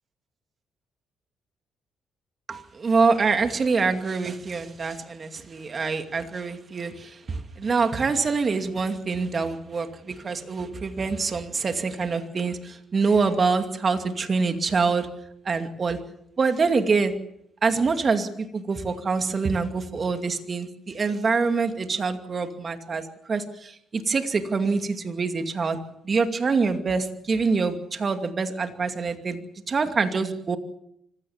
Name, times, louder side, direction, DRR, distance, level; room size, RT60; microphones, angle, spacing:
voice 1, 2.5-15.1 15.4-16.0 16.4-17.2 17.6-25.8 26.0-30.6, right 4 dB, 40° right, 7 dB, 2.5 m, -25 dB
25.0 x 16.5 x 7.3 m, 0.77 s
cardioid pair, 90°, 0 cm